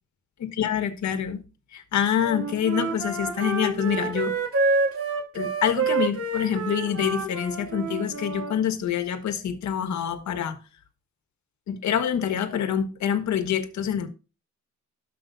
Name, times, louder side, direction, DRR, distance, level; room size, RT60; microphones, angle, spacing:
voice 1, 0.4-1.4 1.7-4.4 5.3-10.6 11.7-14.1, left 8 dB, 70° left, 1.6 m, -26 dB
Wind instrument woodwind instrument, 2.2-8.6, right 3 dB, 50° right, 2.4 m, -28 dB
13.0 x 5.5 x 2.7 m
cardioid pair, 90°, 30 cm